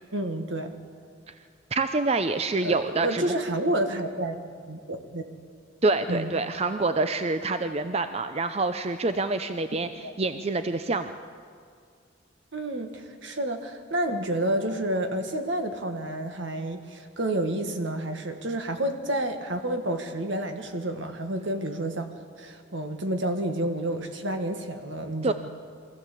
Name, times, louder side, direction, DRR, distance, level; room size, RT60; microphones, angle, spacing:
voice 1, 0.1-0.7 2.6-2.7 3.0-5.2 6.1-6.4 10.0-10.1 12.5-25.3, right 1 dB, 70° right, 6 dB, 1.8 m, -30 dB
voice 2, 1.7-3.4 5.8-11.2 25.2-25.3, right 3 dB, 30° right, 9 dB, 0.5 m, -26 dB
23.0 x 15.0 x 8.4 m, 2.2 s
head